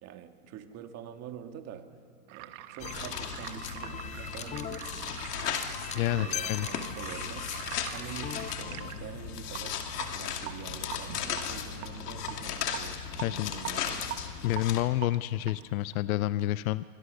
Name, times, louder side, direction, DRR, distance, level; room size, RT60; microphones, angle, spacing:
voice 1, 0.0-1.8 2.3-5.1 6.0-7.5 7.9-9.8 10.1-14.1, right 9 dB, 35° right, 6 dB, 2.0 m, -45 dB
sound 1, 2.3-15.9, right 15 dB, 50° right, 1.4 m, -44 dB
sound 2, 2.8-14.8, left 7 dB, 80° left, 2.5 m, -37 dB
sound 3, 2.8-9.0, left 9 dB, 15° left, 0.5 m, -41 dB
voice 2, 5.9-6.7 13.2-13.5 14.4-16.8, left 15 dB, 65° left, 16 dB, 0.7 m, -29 dB
27.5 x 24.5 x 6.6 m, 2.4 s
hypercardioid pair, 125°, 46 cm